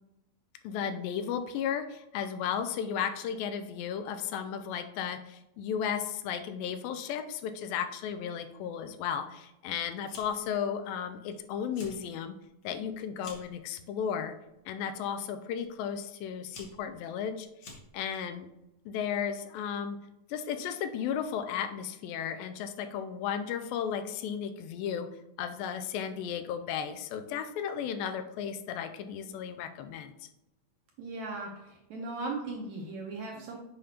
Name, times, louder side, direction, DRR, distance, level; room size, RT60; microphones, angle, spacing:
voice 1, 0.6-12.4 12.6-14.4 14.7-18.5 18.9-20.0 20.3-25.1 25.4-30.1, left 8 dB, 90° left, 8 dB, 2.3 m, -34 dB
Fire, 10.0-10.5 10.8-11.3 11.6-12.0 12.4-13.6 14.4-14.7 15.6-15.7 16.2-18.2, left 3 dB, 65° left, 1.3 m, -50 dB
voice 2, 31.0-33.6, right 3 dB, 70° right, -1 dB, 1.8 m, -38 dB
7.5 x 5.0 x 2.9 m, 0.89 s
omnidirectional pair, 4.1 m